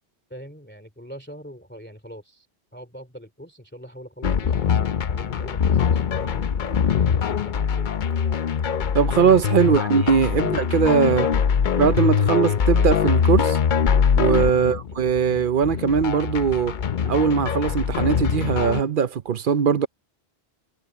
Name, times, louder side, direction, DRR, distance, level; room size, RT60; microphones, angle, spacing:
voice 1, 0.3-2.5 2.7-6.5 6.8-7.9 9.6-9.7 11.1-12.2 12.7-12.9 14.5-14.8, equal, 10° left, 2.8 m, -42 dB
sound 1, 4.2-18.8, left 7 dB, 55° left, 0.8 m, -22 dB
sound 2, 6.2-6.8 7.2-7.3 7.7-8.2 8.6-8.7 9.1-9.2 9.6-9.8 10.1-11.4 11.6-11.8 12.2-12.5, equal, 10° right, 5.1 m, -50 dB
voice 2, 8.9-11.3 11.8-13.6 14.2-16.8 17.1-19.9, right 7 dB, 60° right, 0.8 m, -20 dB
omnidirectional pair, 1.0 m